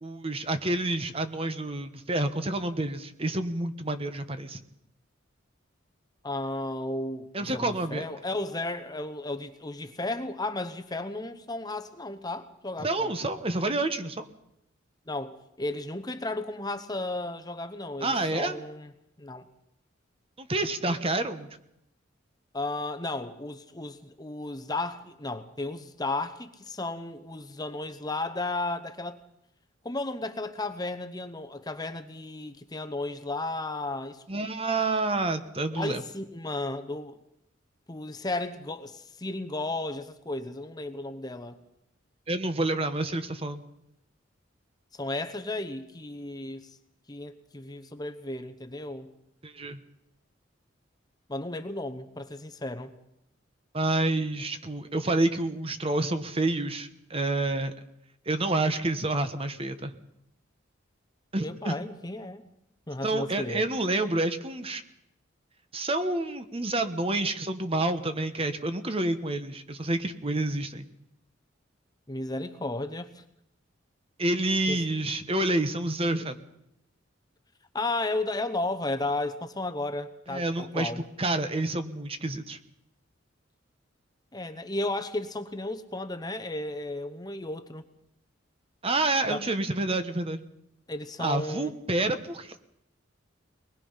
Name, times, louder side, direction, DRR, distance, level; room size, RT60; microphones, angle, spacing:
voice 1, 0.0-4.6 7.3-8.1 12.8-14.3 18.0-18.6 20.4-21.5 34.3-36.0 42.3-43.6 49.4-49.8 53.7-57.7 58.3-60.0 61.3-61.8 63.0-64.8 65.7-70.9 74.2-76.4 80.3-80.9 81.2-82.6 88.8-90.4 91.2-92.6, right 2 dB, 30° right, 1.2 m, -28 dB
voice 2, 6.2-13.2 15.1-18.9 19.2-19.5 22.5-29.2 29.8-34.5 35.7-37.2 37.9-41.6 44.9-46.7 47.1-49.1 51.3-52.9 61.4-62.4 62.9-63.7 72.1-73.2 74.7-74.8 77.7-81.0 84.3-87.8 89.3-89.4 90.9-91.7, left 2 dB, 20° left, 1.0 m, -34 dB
23.0 x 20.5 x 5.7 m
head